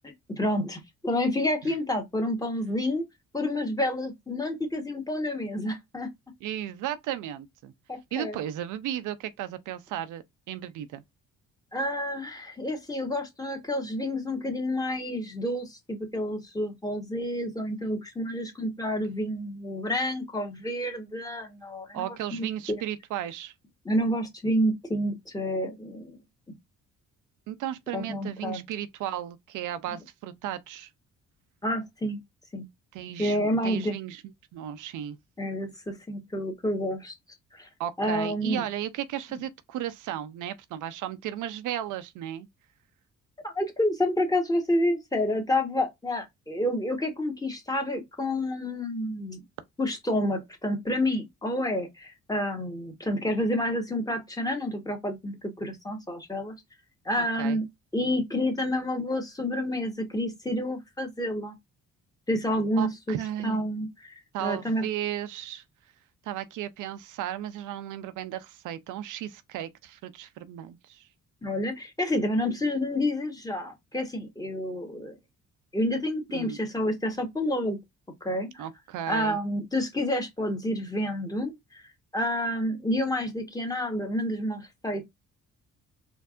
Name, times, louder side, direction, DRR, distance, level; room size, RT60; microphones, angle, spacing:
voice 1, 0.0-3.1 3.3-6.1 7.9-8.4 11.7-22.8 23.8-26.2 27.9-28.6 31.6-32.2 32.5-32.7 33.2-33.9 35.4-37.1 37.5-37.7 38.0-38.6 43.4-49.4 49.8-56.5 57.0-57.6 57.9-61.5 62.3-63.2 63.4-64.9 71.4-75.2 75.7-77.8 78.2-78.6 79.1-81.8 82.1-85.1, left 1 dB, 10° left, 1.3 m, -29 dB
voice 2, 6.4-7.7 8.1-11.0 21.9-23.5 27.5-30.9 32.9-34.2 34.5-35.2 37.8-42.5 57.2-57.6 62.8-63.6 64.3-65.6 66.3-71.1 76.3-76.6 78.6-79.4, right 11 dB, 85° right, 0.6 m, -35 dB
4.4 x 2.6 x 2.5 m
cardioid pair, 90°, 30 cm